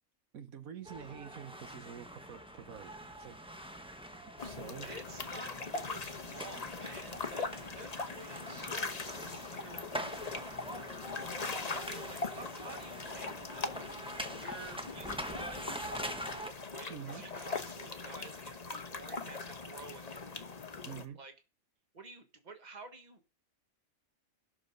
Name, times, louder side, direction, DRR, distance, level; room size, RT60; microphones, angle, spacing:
voice 1, 0.3-3.4 4.1-4.9 12.3-12.4 16.9-17.2 20.8-21.2, right 8 dB, 80° right, 1.4 m, -47 dB
sound 1, 0.9-16.5, equal, 5° right, 1.0 m, -45 dB
sound 2, 4.4-21.0, left 4 dB, 30° left, 1.0 m, -41 dB
voice 2, 4.7-10.0 11.6-16.3 16.7-20.3 21.1-21.3 21.9-23.2, right 3 dB, 30° right, 1.7 m, -51 dB
14.0 x 6.4 x 5.4 m
omnidirectional pair, 1.5 m